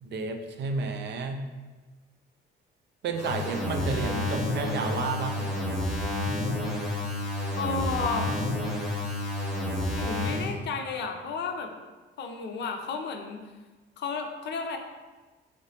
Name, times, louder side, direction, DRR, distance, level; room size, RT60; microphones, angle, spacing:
voice 1, 0.0-1.4 3.0-5.7, right 3 dB, 60° right, 5 dB, 0.4 m, -31 dB
sound 1, 3.1-10.5, left 1 dB, ahead, 0.9 m, -30 dB
voice 2, 7.5-8.3 9.9-11.7 12.2-13.4 14.0-14.8, left 4 dB, 60° left, 5 dB, 0.5 m, -32 dB
3.1 x 3.0 x 2.8 m, 1.3 s
cardioid pair, 90°, 20 cm